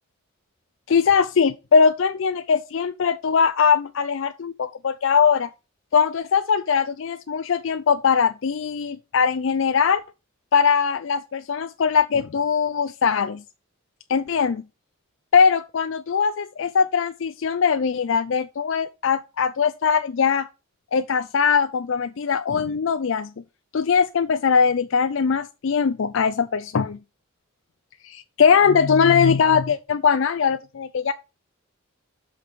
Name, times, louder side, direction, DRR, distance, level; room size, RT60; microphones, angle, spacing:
voice 1, 0.9-5.5 5.9-10.0 10.5-13.4 14.1-14.6 15.3-20.5 20.9-23.3 23.7-27.0 28.0-31.1, left 6 dB, 60° left, 0.4 m, -21 dB
5.9 x 5.2 x 6.8 m
head